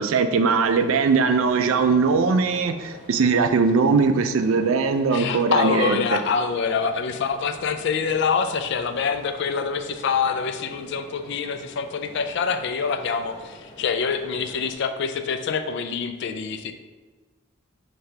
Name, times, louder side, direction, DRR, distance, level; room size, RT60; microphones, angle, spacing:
voice 1, 0.0-6.2, right 4 dB, 70° right, 8 dB, 0.4 m, -20 dB
sound 1, 0.6-14.7, left 1 dB, 30° left, 0.8 m, -45 dB
voice 2, 5.1-16.7, left 5 dB, 55° left, 8 dB, 0.3 m, -25 dB
5.7 x 2.8 x 3.3 m, 1.3 s
head